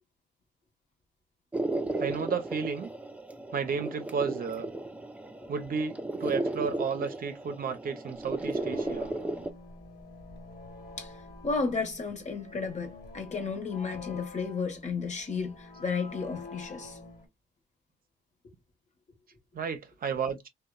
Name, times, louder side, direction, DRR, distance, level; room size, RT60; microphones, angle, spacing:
sound 1, 1.5-9.5, right 2 dB, 5° right, 0.4 m, -35 dB
voice 1, 2.0-2.9 3.5-4.7 5.5-9.1 19.5-20.5, right 6 dB, 45° right, 0.6 m, -32 dB
sound 2, 8.3-17.2, left 3 dB, 50° left, 1.4 m, -47 dB
voice 2, 11.4-17.0, left 4 dB, 35° left, 1.1 m, -33 dB
2.9 x 2.2 x 2.2 m
cardioid pair, 90°, 20 cm